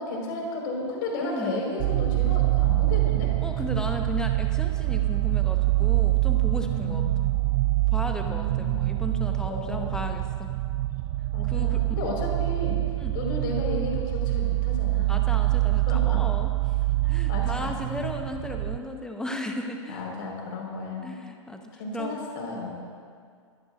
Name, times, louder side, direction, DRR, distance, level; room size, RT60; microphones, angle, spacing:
voice 1, 0.0-3.3 6.6-7.1 8.2-9.0 9.4-10.1 11.3-12.8 13.1-15.2 15.9-16.2 17.3-17.7 19.9-21.1 21.8-22.7, left 2 dB, 45° left, -1 dB, 5.0 m, -33 dB
voice 2, 1.2-1.6 3.4-7.3 7.9-10.5 11.5-11.8 13.0-13.1 15.1-16.8 17.1-20.0 21.0-21.6 21.9-22.2, left 1 dB, 5° left, 4 dB, 1.2 m, -35 dB
sound 1, 1.8-18.8, right 19 dB, 35° right, 0.6 m, -25 dB
26.5 x 16.5 x 2.6 m, 2.1 s
figure-of-eight pair, 110°, 16 cm